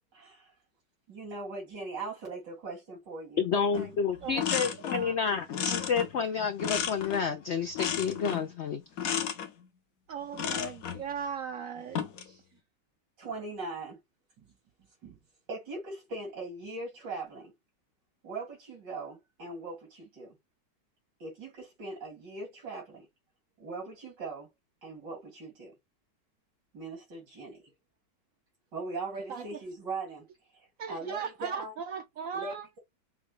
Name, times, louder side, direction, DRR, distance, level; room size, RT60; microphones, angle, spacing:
voice 1, 0.1-0.5 1.1-3.9 13.2-14.0 14.4-14.5 15.0-15.2 15.5-17.5 18.2-20.4 21.2-23.1 23.6-24.5 24.8-25.7 26.7-27.7 28.7-30.2 30.9-31.7 32.3-32.8, right 3 dB, 90° right, 3.3 m, -40 dB
voice 2, 3.4-8.8, left 6 dB, 80° left, 0.6 m, -30 dB
sound 1, 3.7-3.9 4.2-5.1 5.5-7.3 7.7-8.5 9.0-9.5 10.3-11.0 11.8-12.3, left 8 dB, 60° left, 1.1 m, -33 dB
voice 3, 4.2-4.6 4.8-5.3 10.1-12.4 29.3-29.6 30.8-32.7, right 7 dB, 65° right, 0.8 m, -38 dB
6.2 x 2.3 x 3.2 m
omnidirectional pair, 1.8 m